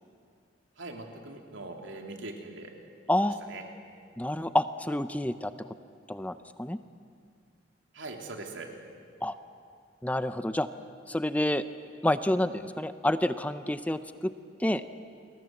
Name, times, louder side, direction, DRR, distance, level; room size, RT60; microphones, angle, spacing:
voice 1, 0.8-2.7 3.2-3.6 7.9-8.7, right 2 dB, 90° right, 3 dB, 3.2 m, -41 dB
voice 2, 3.1-3.4 4.2-5.5 6.1-6.8 9.2-9.3 10.0-10.7 11.1-11.6 12.0-14.3 14.6-15.0, left 1 dB, 10° left, 12 dB, 0.6 m, -28 dB
29.0 x 21.5 x 7.6 m, 2.3 s
head